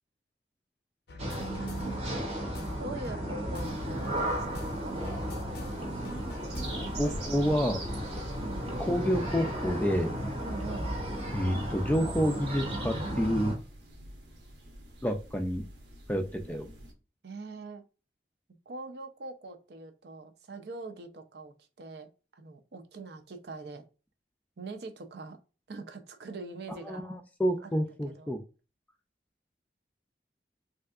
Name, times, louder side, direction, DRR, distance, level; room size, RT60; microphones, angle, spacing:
sound 1, 1.1-7.2, left 2 dB, 70° left, 0.5 m, -48 dB
sound 2, 1.2-13.5, equal, 35° right, 0.7 m, -34 dB
voice 1, 2.8-5.0 8.4-8.6 10.4-10.9 17.2-17.8 18.7-23.8 24.6-25.4 25.7-27.0 27.6-28.4, right 3 dB, 70° right, 7 dB, 0.5 m, -43 dB
sound 3, 3.5-16.9, right 2 dB, 85° right, 0.9 m, -48 dB
voice 2, 7.0-7.8 8.8-10.1 11.3-13.5 15.0-15.6 16.1-16.7 26.7-28.4, equal, 10° left, 5 dB, 0.3 m, -29 dB
3.3 x 2.7 x 2.3 m, 0.33 s
head